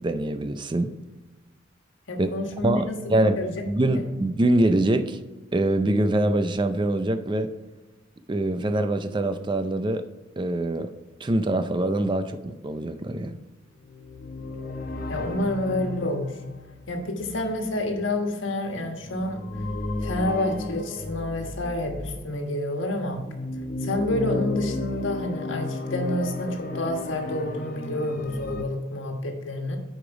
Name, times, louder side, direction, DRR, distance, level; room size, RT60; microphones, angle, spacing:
voice 1, 0.0-0.9 2.2-2.3 2.6-3.4 3.7-5.2 5.5-7.5 8.3-10.0 10.4-10.9 11.2-13.4, right 1 dB, 25° right, 9 dB, 0.4 m, -24 dB
voice 2, 2.1-3.5 3.9-4.1 15.1-16.4 16.9-19.4 20.0-23.2 23.8-29.8, left 1 dB, 85° left, 3 dB, 1.4 m, -29 dB
sound 1, 13.8-22.3 22.9-28.6, left 2 dB, 50° left, 0.8 m, -34 dB
8.9 x 5.1 x 4.7 m, 1.2 s
head